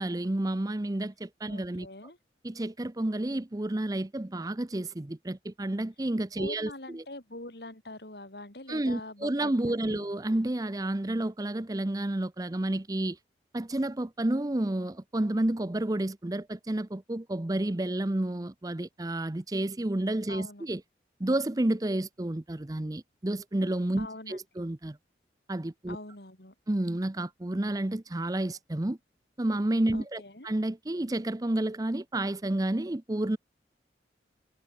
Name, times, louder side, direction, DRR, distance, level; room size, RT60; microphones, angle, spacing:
voice 1, 0.0-1.9 2.4-7.0 8.7-13.2 13.5-20.8 21.2-25.0 25.5-26.0 26.7-29.0 29.4-33.4, right 1 dB, 20° right, 0.6 m, -30 dB
voice 2, 1.5-2.2 6.4-10.0 20.3-20.7 24.0-24.4 25.9-26.5 29.9-30.5, left 2 dB, 65° left, 4.3 m, -44 dB
head